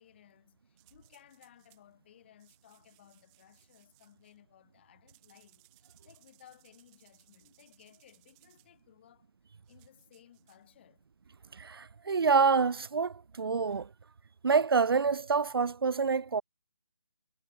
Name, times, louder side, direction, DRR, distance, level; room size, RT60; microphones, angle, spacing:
voice 1, 0.0-9.3 9.7-11.0, left 11 dB, 30° left, 3.9 m, -60 dB
sound 1, 0.8-1.8 2.4-4.4 5.1-8.7 9.7-10.6, right 37 dB, 15° right, 3.2 m, -66 dB
voice 2, 11.6-13.9 14.4-16.4, right 5 dB, 90° right, 0.5 m, -27 dB
hypercardioid pair, 165°, 12 cm